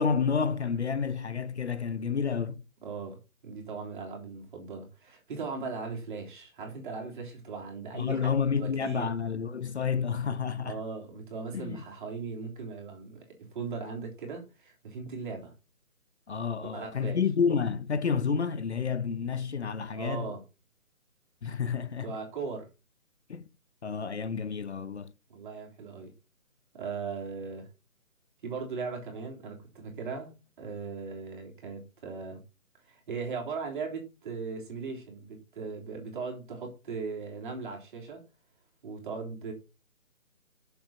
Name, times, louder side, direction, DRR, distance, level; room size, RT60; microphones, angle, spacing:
voice 1, 0.0-2.6 7.9-10.8 11.5-11.8 16.3-20.3 21.4-22.1 23.3-23.5 23.8-25.1, left 6 dB, 50° left, 0.8 m, -30 dB
voice 2, 2.8-9.1 10.6-15.5 16.6-17.2 19.9-20.4 22.0-22.7 25.3-26.1 26.7-27.7 28.4-32.4 32.8-38.2 38.8-39.5, right 4 dB, 35° right, 3.7 m, -38 dB
7.7 x 7.2 x 5.8 m
figure-of-eight pair, 155°, 42 cm